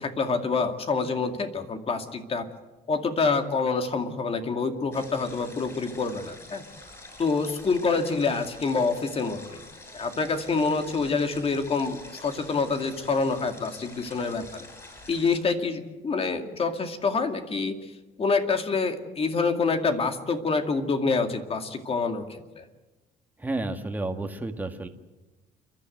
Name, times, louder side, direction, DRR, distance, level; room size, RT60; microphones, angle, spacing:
voice 1, 0.0-2.4 2.9-6.6 7.2-9.6 9.9-14.7 15.1-17.9 18.2-22.6, left 4 dB, 35° left, 6 dB, 2.3 m, -27 dB
sound 1, 4.9-15.4, left 2 dB, 15° left, 8.0 m, -47 dB
voice 2, 23.4-24.9, right 2 dB, 10° right, 5 dB, 1.8 m, -31 dB
29.0 x 12.0 x 9.3 m, 1.1 s
cardioid pair, 110°, 17 cm